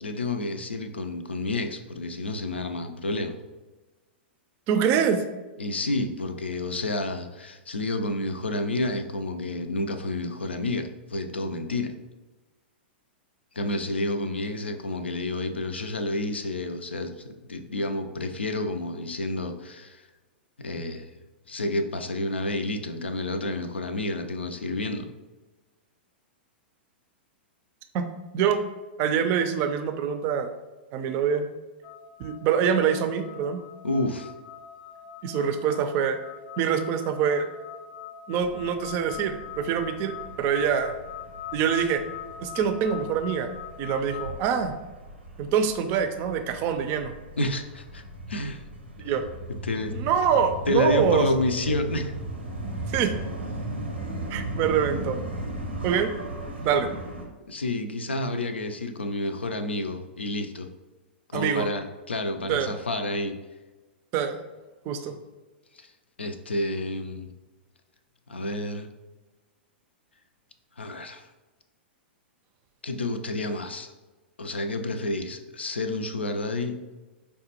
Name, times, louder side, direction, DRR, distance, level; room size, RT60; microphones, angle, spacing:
voice 1, 0.0-3.4 5.6-12.0 13.5-20.0 20.6-21.1 21.5-25.1 33.8-34.3 47.4-48.0 48.3-48.6 49.6-49.9 50.7-52.1 57.5-60.7 61.3-63.4 65.7-65.9 66.2-67.3 68.3-68.9 70.8-71.3 72.8-73.9 74.4-77.0, left 2 dB, 85° left, 7 dB, 0.4 m, -29 dB
voice 2, 4.7-5.2 27.9-28.0 28.3-28.6 29.0-30.5 30.9-31.5 32.2-33.6 35.2-36.2 36.6-37.5 38.3-40.9 41.5-42.0 42.4-43.5 43.8-44.7 45.4-47.1 49.0-49.2 49.9-51.3 52.9-53.1 54.3-55.2 55.8-56.1 56.6-56.9 61.3-61.7 62.5-62.7 64.1-64.4 64.9-65.2, right 7 dB, 40° right, 8 dB, 0.4 m, -25 dB
sound 1, 31.8-44.2, left 9 dB, 30° left, 0.5 m, -42 dB
sound 2, 38.4-57.2, right 1 dB, 85° right, 0.7 m, -37 dB
4.9 x 2.1 x 2.9 m, 1.2 s
figure-of-eight pair, 105°, 6 cm